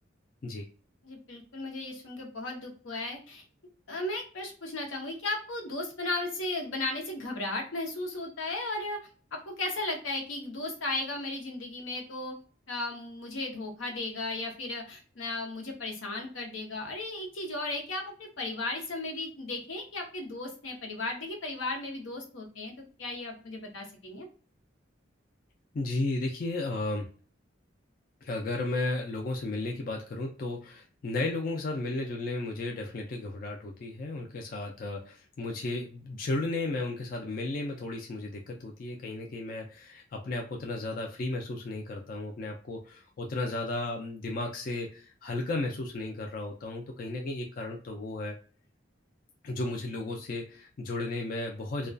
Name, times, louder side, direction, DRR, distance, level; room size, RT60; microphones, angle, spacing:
voice 1, 1.0-3.4 3.9-9.0 9.3-12.4 12.7-22.7 23.0-24.3, left 2 dB, 90° left, 2 dB, 0.8 m, -35 dB
voice 2, 25.7-27.1 28.2-48.4 49.4-51.9, left 2 dB, 45° left, 2 dB, 0.3 m, -34 dB
2.3 x 2.2 x 2.4 m, 0.39 s
head